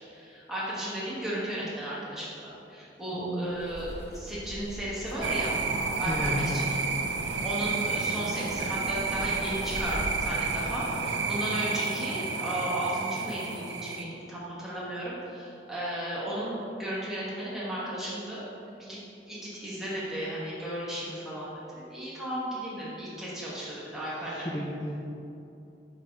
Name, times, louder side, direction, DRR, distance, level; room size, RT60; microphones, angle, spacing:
voice 1, 0.1-2.3 2.7-5.5 6.0-6.7 7.2-18.5 18.9-19.0 19.3-24.5, right 1 dB, ahead, -9 dB, 1.4 m, -34 dB
voice 2, 3.1-3.5 6.1-6.6 23.4-24.0 24.2-25.0, equal, 20° left, -4 dB, 0.4 m, -34 dB
Wind, 3.4-11.2, equal, 60° left, 1.2 m, -42 dB
sound 1, 5.2-14.0, right 4 dB, 75° right, 0.5 m, -31 dB
4.6 x 4.5 x 5.3 m, 2.8 s
head